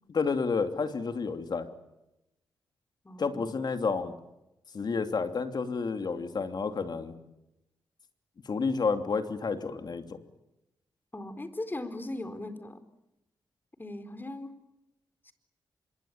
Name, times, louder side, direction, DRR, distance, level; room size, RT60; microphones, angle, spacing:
voice 1, 0.1-1.7 3.2-4.1 4.7-7.1 8.5-10.0, left 4 dB, 55° left, 8 dB, 2.9 m, -30 dB
voice 2, 3.0-3.6 11.1-12.8 13.8-14.5 15.2-15.3, left 2 dB, 25° left, 11 dB, 4.4 m, -39 dB
26.0 x 23.5 x 8.9 m, 0.92 s
cardioid pair, 55°, 8 cm